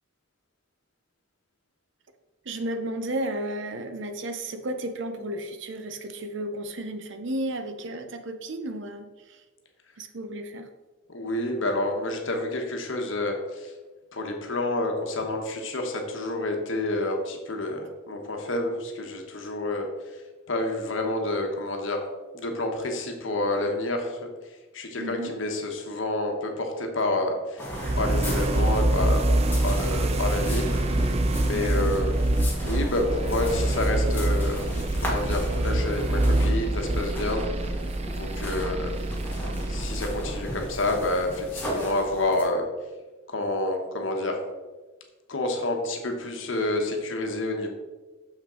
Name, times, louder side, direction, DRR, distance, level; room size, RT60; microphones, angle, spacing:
voice 1, 2.5-9.1 10.0-10.6 25.0-25.4 31.5-31.9, right 1 dB, 65° right, 7 dB, 0.7 m, -33 dB
voice 2, 11.1-13.7 14.1-20.2 20.5-22.0 22.3-24.3 24.7-27.7 27.9-30.7 31.0-34.7 35.0-37.4 38.1-39.0 39.7-42.7 43.3-44.4 45.3-47.7, left 2 dB, 70° left, 3 dB, 1.1 m, -29 dB
sound 1, 27.6-42.4, equal, 10° left, 1.6 m, -37 dB
sound 2, 27.7-41.6, right 1 dB, 30° right, 0.4 m, -26 dB
6.6 x 5.8 x 3.8 m, 1.2 s
head